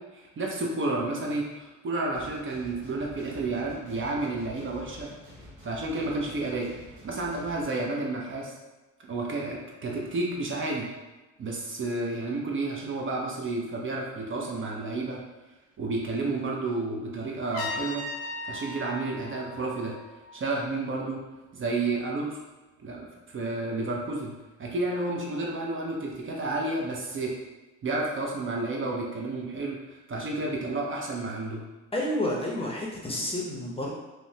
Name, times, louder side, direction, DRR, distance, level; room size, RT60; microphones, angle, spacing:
voice 1, 0.0-5.1 5.6-6.7 7.0-8.5 9.0-10.9 11.4-15.2 15.8-18.1 18.4-20.0 20.3-21.2 21.5-22.4 22.8-23.1 23.3-24.3 24.6-27.4 27.8-31.6, right 2 dB, 40° right, -1 dB, 0.6 m, -31 dB
sound 1, 2.1-7.6, left 1 dB, 75° right, 1.0 m, -48 dB
Trumpet, 17.5-20.5, left 3 dB, 85° left, 0.6 m, -38 dB
voice 2, 31.9-33.9, left 1 dB, 20° left, -3 dB, 0.6 m, -30 dB
3.1 x 2.0 x 2.7 m, 1.2 s
cardioid pair, 90°, 30 cm